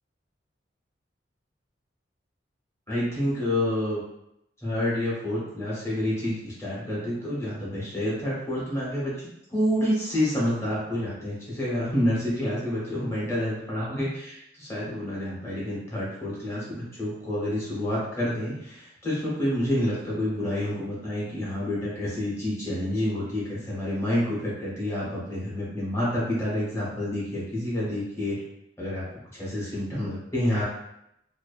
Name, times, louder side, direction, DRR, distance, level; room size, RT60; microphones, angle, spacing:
voice 1, 2.9-4.0 4.6-9.1 9.5-28.4 28.8-29.0 29.4-30.6, left 1 dB, 15° left, -8 dB, 0.9 m, -28 dB
2.6 x 2.1 x 2.4 m, 0.81 s
head